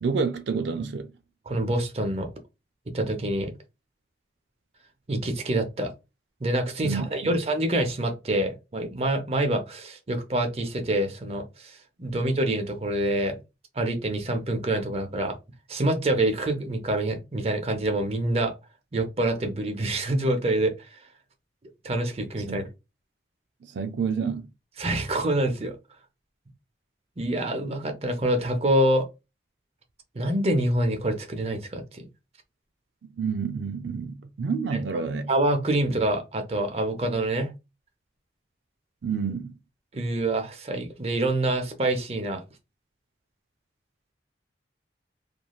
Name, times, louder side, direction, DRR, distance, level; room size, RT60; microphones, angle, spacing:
voice 1, 0.0-1.1 6.8-7.4 22.5-22.6 23.7-24.5 33.2-35.3 39.0-39.5, right 5 dB, 80° right, 0.4 m, -29 dB
voice 2, 1.5-2.3 2.9-3.5 5.1-5.9 6.4-13.4 13.8-15.4 15.7-18.5 18.9-20.7 21.8-22.7 24.8-25.7 27.2-29.1 30.1-32.1 34.9-35.0 35.3-37.5 39.9-42.4, right 1 dB, 35° right, 0.6 m, -26 dB
3.0 x 2.5 x 2.3 m
head